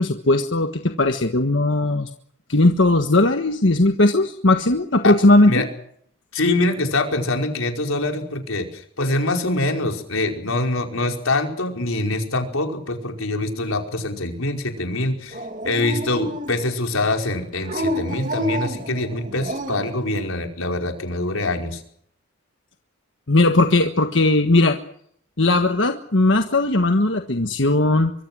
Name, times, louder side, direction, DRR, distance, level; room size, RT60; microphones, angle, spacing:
voice 1, 0.0-2.1 2.5-5.7 23.3-24.8 25.4-28.1, left 2 dB, 65° left, 6 dB, 1.5 m, -18 dB
voice 2, 6.3-21.8, left 2 dB, 90° left, 3 dB, 5.1 m, -24 dB
Dog, 15.3-16.8 17.6-20.0, equal, 40° right, 2.4 m, -29 dB
25.0 x 23.0 x 6.3 m, 0.67 s
head